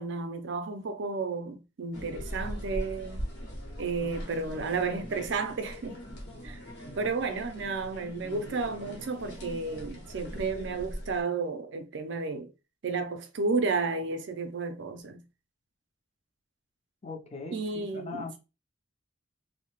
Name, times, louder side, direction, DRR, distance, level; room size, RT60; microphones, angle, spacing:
voice 1, 0.0-3.2 3.8-6.0 6.4-6.6 6.9-12.5 12.8-15.2 17.5-18.4, right 4 dB, 60° right, 0.4 m, -32 dB
sound 1, 1.9-11.2, equal, 55° left, 0.9 m, -41 dB
voice 2, 17.0-18.4, left 4 dB, 30° left, 0.5 m, -40 dB
2.7 x 2.1 x 2.9 m
head